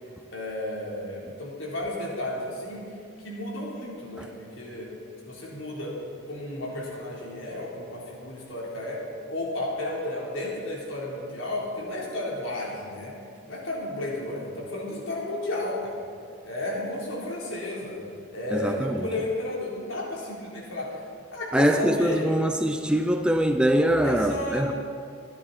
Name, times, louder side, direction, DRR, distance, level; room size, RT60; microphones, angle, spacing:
voice 1, 0.3-2.9 3.2-4.9 5.2-5.9 6.3-9.0 9.3-13.1 13.5-16.0 16.4-18.0 18.3-21.0 21.3-22.3 24.0-24.7, left 1 dB, 75° left, -4 dB, 3.9 m, -33 dB
voice 2, 18.5-19.1 21.5-24.7, equal, 5° right, 5 dB, 0.5 m, -23 dB
26.0 x 10.0 x 4.4 m, 2.3 s
head